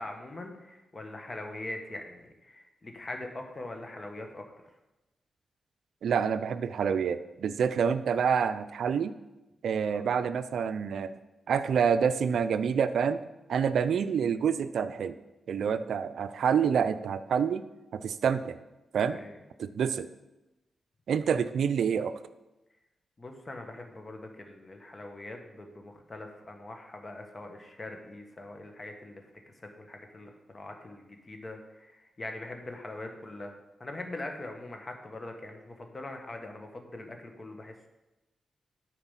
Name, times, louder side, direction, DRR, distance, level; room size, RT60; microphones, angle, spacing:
voice 1, 0.0-4.7 9.9-10.0 15.7-15.8 19.1-19.4 23.2-29.2 29.5-33.5 33.8-37.9, left 2 dB, 40° left, 4 dB, 1.5 m, -42 dB
voice 2, 6.0-9.1 9.6-11.1 11.5-13.2 13.5-15.1 15.5-17.6 17.9-18.6 18.9-19.2 19.6-20.1 21.1-22.1, right 7 dB, 75° right, 12 dB, 0.4 m, -27 dB
8.7 x 4.9 x 5.7 m, 1.0 s
supercardioid pair, 40°, 0 cm